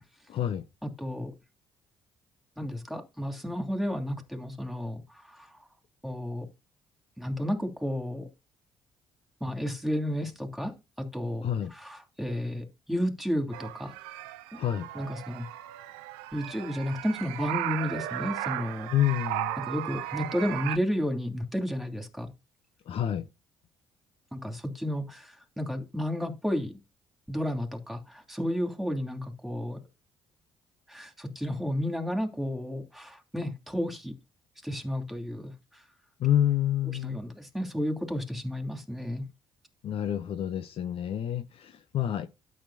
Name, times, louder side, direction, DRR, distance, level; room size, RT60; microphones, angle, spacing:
voice 1, 0.3-0.6 11.4-11.7 14.6-14.9 18.9-19.5 22.9-23.2 36.2-37.2 39.8-42.3, left 11 dB, 55° left, 0.8 m, -28 dB
voice 2, 0.8-1.3 2.6-5.6 6.0-6.5 7.2-8.3 9.4-10.7 11.0-13.9 14.9-15.5 16.3-18.9 19.6-22.3 24.3-26.7 27.3-29.8 30.9-34.1 34.6-35.8 37.0-39.2, equal, ahead, 2.9 m, -32 dB
sound 1, 13.5-20.8, right 15 dB, 75° right, 0.7 m, -36 dB
12.0 x 6.4 x 2.8 m
hypercardioid pair, 50°, 12 cm